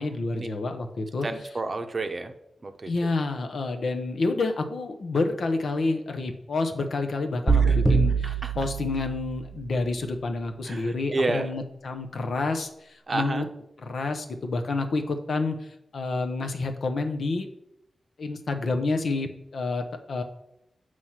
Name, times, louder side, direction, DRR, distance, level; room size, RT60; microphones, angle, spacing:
voice 1, 0.0-1.3 2.9-13.5 13.8-15.6 15.9-17.5 18.2-20.2, left 3 dB, 70° left, 6 dB, 0.7 m, -29 dB
voice 2, 1.2-2.3 2.6-2.9 7.5-7.8 8.2-8.5 10.6-11.5 13.1-13.5, right 2 dB, 40° right, 7 dB, 0.7 m, -30 dB
sound 1, 7.5-9.6, right 5 dB, 10° right, 0.9 m, -23 dB
7.3 x 3.2 x 5.7 m, 0.80 s
cardioid pair, 75°, 0 cm